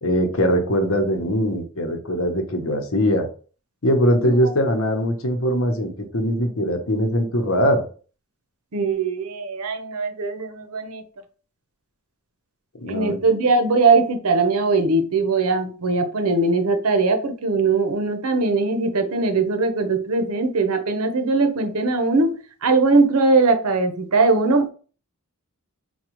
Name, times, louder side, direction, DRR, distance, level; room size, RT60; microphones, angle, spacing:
voice 1, 0.0-3.3 3.8-7.8 12.8-13.2, equal, 65° left, 0.9 m, -21 dB
voice 2, 8.7-11.0 12.9-22.3 22.6-24.7, right 3 dB, 90° right, 0.7 m, -20 dB
4.7 x 2.3 x 3.0 m
head